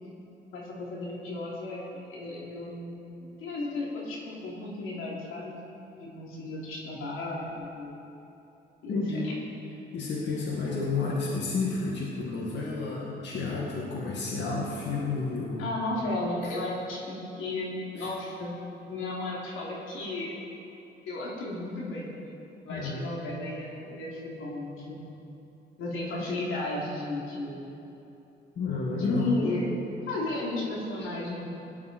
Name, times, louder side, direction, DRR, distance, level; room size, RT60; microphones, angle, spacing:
voice 1, 0.5-5.6 6.0-7.9 8.8-9.3 15.6-18.5 18.9-20.3 21.0-22.1 22.6-25.1 25.8-27.6 29.0-29.7 30.1-31.4, left 2 dB, 85° left, -4 dB, 3.2 m, -34 dB
voice 2, 8.9-9.3 9.9-15.6 16.4-16.5 18.0-18.1 22.7-23.1 28.6-29.4 31.0-31.1, left 3 dB, 60° left, -4 dB, 2.2 m, -31 dB
17.5 x 11.0 x 4.5 m, 2.9 s
cardioid pair, 90°, 20 cm